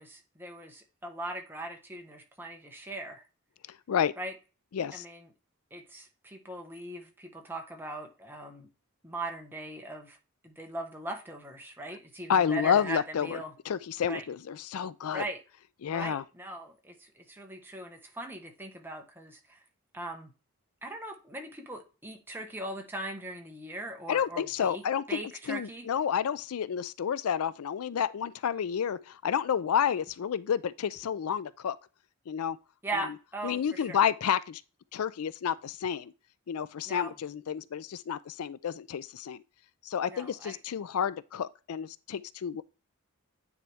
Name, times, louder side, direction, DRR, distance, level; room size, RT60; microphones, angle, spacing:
voice 1, 0.0-3.2 4.2-4.3 4.9-5.3 5.7-8.7 9.0-10.2 10.4-13.5 14.1-14.2 15.1-15.4 15.9-19.6 19.9-20.3 20.8-24.8 25.1-25.9 32.8-34.0 36.9-37.1 40.1-40.6, right 2 dB, 10° right, 1.2 m, -40 dB
voice 2, 4.7-5.1 12.3-15.2 15.8-16.2 24.1-25.2 25.5-31.8 32.3-32.6 32.9-33.1 33.4-34.6 34.9-36.1 36.5-39.4 39.8-42.6, left 8 dB, 80° left, 0.4 m, -30 dB
9.3 x 4.2 x 3.5 m
head